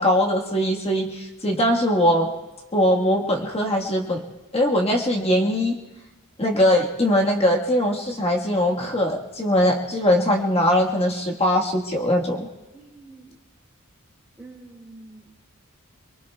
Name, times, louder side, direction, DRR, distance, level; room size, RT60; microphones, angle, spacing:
voice 1, 0.0-2.3 2.7-4.2 4.5-5.7 6.4-12.5, equal, 30° left, -1 dB, 1.5 m, -21 dB
voice 2, 12.7-13.3 14.4-15.4, right 2 dB, 5° right, -7 dB, 3.2 m, -46 dB
26.5 x 23.5 x 2.3 m, 1.1 s
head